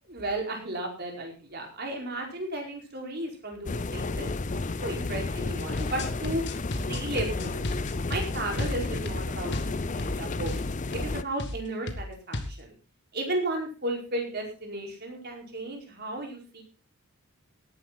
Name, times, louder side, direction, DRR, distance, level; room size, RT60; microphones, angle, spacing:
voice 1, 0.1-6.4 6.8-7.7 8.1-10.6 10.9-12.7 13.1-16.6, right 1 dB, 45° right, 2 dB, 4.8 m, -34 dB
sound 1, 3.6-11.2, left 3 dB, 35° left, 0.6 m, -32 dB
sound 2, 5.6-10.2 10.5-10.6 10.9-11.1 11.4-11.6 11.9-12.6, left 1 dB, 50° left, 1.9 m, -33 dB
18.0 x 10.5 x 4.1 m, 0.34 s
head